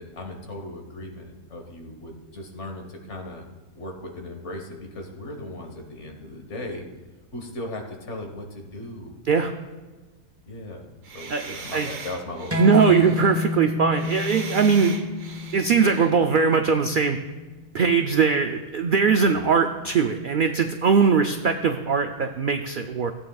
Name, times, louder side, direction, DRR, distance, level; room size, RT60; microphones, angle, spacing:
voice 1, 0.0-3.5 3.7-6.9 7.3-9.2 10.4-10.9 11.1-12.6 12.9-13.0 19.2-19.5, left 1 dB, 55° left, 3 dB, 1.6 m, -37 dB
sound 1, 11.0-16.1, right 4 dB, 65° right, 1.4 m, -40 dB
voice 2, 11.3-11.9 12.6-14.9 15.5-17.2 17.7-23.1, right 5 dB, 85° right, 5 dB, 0.4 m, -21 dB
sound 2, 12.5-17.7, left 5 dB, 10° right, 0.9 m, -30 dB
16.0 x 8.7 x 2.3 m, 1.3 s
omnidirectional pair, 1.5 m